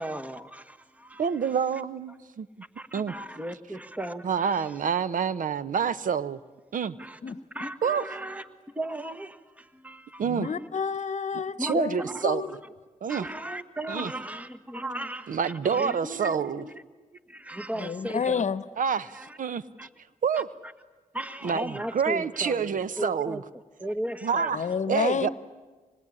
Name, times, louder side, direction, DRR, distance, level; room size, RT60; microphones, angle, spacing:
voice 1, 0.0-1.3 2.8-4.7 7.0-7.2 7.5-8.5 8.7-10.2 11.6-12.5 13.1-18.4 19.1-19.4 19.8-19.9 21.1-23.4 23.8-24.6, right 1 dB, 10° right, 9 dB, 1.5 m, -36 dB
voice 2, 1.2-2.5 2.9-3.1 4.2-6.4 6.7-7.0 7.8-8.2 10.2-10.5 11.6-12.6 13.0-13.3 13.9-14.1 15.3-16.6 18.8-19.6 20.2-20.5 21.4-23.4 24.2-25.3, right 6 dB, 70° right, 16 dB, 0.9 m, -27 dB
voice 3, 10.2-12.0 12.2-12.5 17.8-18.6 24.5-25.3, left 6 dB, 60° left, 15 dB, 1.0 m, -29 dB
25.5 x 20.5 x 9.8 m, 1.3 s
cardioid pair, 50°, 14 cm